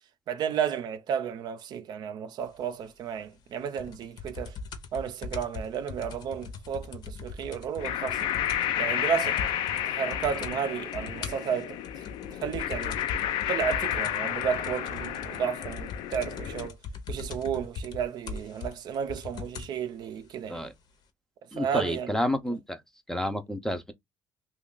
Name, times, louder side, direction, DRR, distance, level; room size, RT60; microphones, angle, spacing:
voice 1, 0.3-4.6 4.9-8.3 8.8-9.4 9.8-13.0 13.5-16.8 17.1-20.7 21.4-22.1, right 8 dB, 55° right, 0.5 m, -32 dB
sound 1, 3.8-8.8 9.1-9.2 9.4-9.8 10.1-10.6 10.9-19.8 20.6-20.7, left 4 dB, 60° left, 0.8 m, -40 dB
sound 2, 7.8-16.7, left 11 dB, 90° left, 0.5 m, -31 dB
voice 2, 21.5-22.8 23.1-23.9, left 1 dB, 5° left, 0.5 m, -30 dB
3.0 x 2.3 x 3.7 m
cardioid pair, 140°, 8 cm